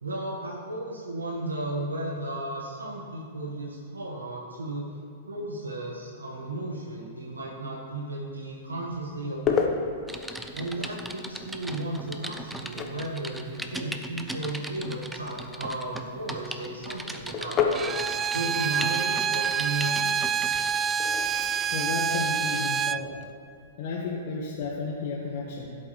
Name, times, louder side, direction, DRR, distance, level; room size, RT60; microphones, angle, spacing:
voice 1, 0.0-4.9 5.3-9.6 10.5-17.9 18.3-20.6, right 2 dB, 85° right, -3 dB, 1.7 m, -34 dB
sound 1, 8.6-23.7, left 6 dB, 35° left, 1.3 m, -35 dB
Typing, 10.1-20.8 21.3-21.5, right 1 dB, 5° right, 0.7 m, -39 dB
Bowed string instrument, 17.7-23.0, right 7 dB, 25° right, 0.3 m, -27 dB
voice 2, 21.4-23.1 23.8-25.7, left 4 dB, 55° left, -5 dB, 1.6 m, -33 dB
15.5 x 8.3 x 3.3 m, 2.5 s
hypercardioid pair, 105°, 0 cm